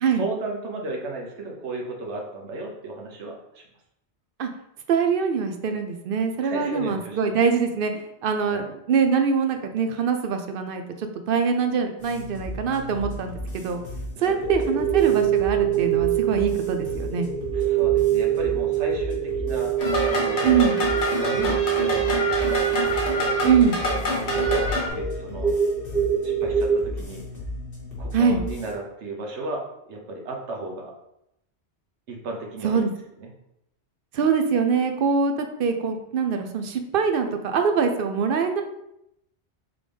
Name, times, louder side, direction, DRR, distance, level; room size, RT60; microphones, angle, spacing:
voice 1, 0.1-3.6 6.4-7.4 8.4-8.7 14.2-14.3 14.6-14.8 17.5-19.8 20.0-22.6 23.8-25.5 26.2-27.2 28.0-30.9 32.1-32.8 33.2-33.3, right 2 dB, 90° right, 0 dB, 1.2 m, -34 dB
voice 2, 4.9-13.8 14.2-17.3 20.4-20.8 23.4-23.8 28.1-28.4 32.6-32.9 34.1-38.6, right 6 dB, 60° right, 6 dB, 0.7 m, -23 dB
sound 1, 12.0-28.7, left 1 dB, 55° left, 1.4 m, -36 dB
sound 2, 14.4-26.8, right 10 dB, 10° right, 0.4 m, -25 dB
sound 3, 19.8-24.9, left 1 dB, 75° left, 1.3 m, -26 dB
3.9 x 3.6 x 3.3 m, 0.81 s
omnidirectional pair, 1.1 m